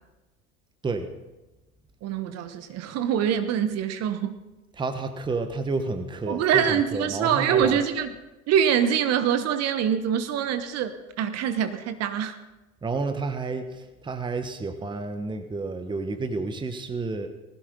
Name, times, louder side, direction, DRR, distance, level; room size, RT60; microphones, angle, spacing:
voice 1, 2.0-4.4 6.3-8.1 8.5-12.4, right 8 dB, 35° right, 10 dB, 1.3 m, -24 dB
voice 2, 4.8-7.8 12.8-17.3, right 3 dB, 10° right, 8 dB, 1.2 m, -30 dB
20.0 x 16.5 x 3.8 m, 1.1 s
hypercardioid pair, 95°, 44 cm